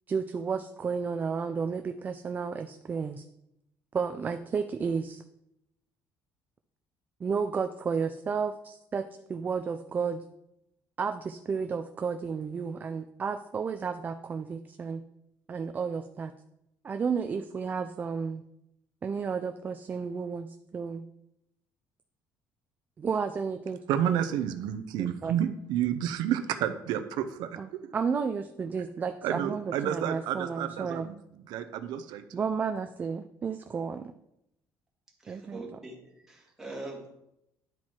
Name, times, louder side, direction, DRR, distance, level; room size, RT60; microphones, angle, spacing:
voice 1, 0.1-3.2 3.9-5.2 7.2-10.2 11.0-15.0 15.5-16.3 16.8-18.4 19.0-21.0 23.0-23.8 24.1-24.3 25.0-25.3 27.6-31.1 32.3-34.1 35.3-35.6, right 5 dB, 25° right, 8 dB, 0.3 m, -32 dB
voice 2, 23.9-27.9 29.2-31.2 31.5-32.4, right 10 dB, 80° right, 9 dB, 0.6 m, -30 dB
voice 3, 35.2-37.1, right 2 dB, 5° right, -2 dB, 1.8 m, -43 dB
10.5 x 4.5 x 4.3 m, 0.82 s
cardioid pair, 155°, 7 cm